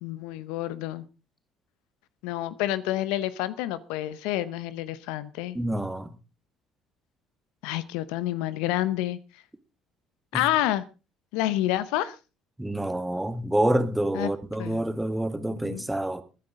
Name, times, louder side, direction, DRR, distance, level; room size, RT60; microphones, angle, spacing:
voice 1, 0.0-1.0 2.2-5.6 7.6-9.2 10.3-10.8 11.3-12.2 14.1-14.3 14.6-14.8 15.6-15.8, left 14 dB, 75° left, 16 dB, 0.8 m, -28 dB
voice 2, 5.5-6.1 10.3-10.4 12.6-16.2, right 1 dB, 10° right, 10 dB, 1.8 m, -27 dB
22.0 x 10.0 x 3.7 m, 0.32 s
hypercardioid pair, 60°, 0 cm